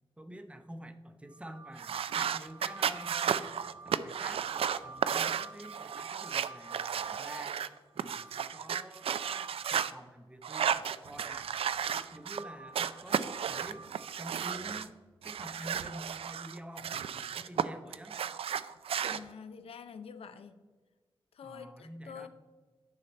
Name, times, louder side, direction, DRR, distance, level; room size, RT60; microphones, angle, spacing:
voice 1, 0.2-4.5 4.8-7.6 7.9-11.5 11.9-15.0 15.2-18.2 21.4-22.3, right 1 dB, 10° right, 7 dB, 0.7 m, -48 dB
sound 1, 1.3-9.8 10.6-14.1, right 2 dB, 45° right, 1.3 m, -51 dB
sound 2, 1.8-9.9 10.4-12.4 12.7-14.9 15.2-17.6 17.9-19.2, right 8 dB, 80° right, 0.4 m, -33 dB
voice 2, 19.1-20.6 21.3-22.3, left 6 dB, 85° left, 10 dB, 0.6 m, -47 dB
9.9 x 5.7 x 4.2 m, 1.4 s
wide cardioid pair, 130°, 10 cm